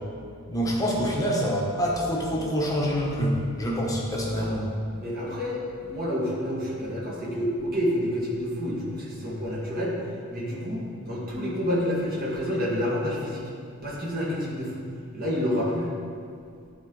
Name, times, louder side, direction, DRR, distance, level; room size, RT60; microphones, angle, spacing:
voice 1, 0.5-4.7, equal, 15° left, -3 dB, 1.1 m, -26 dB
voice 2, 4.9-10.0 10.3-13.4 13.8-14.8 15.1-15.9, equal, 45° right, -6 dB, 2.0 m, -29 dB
11.0 x 4.4 x 3.9 m, 2.3 s
head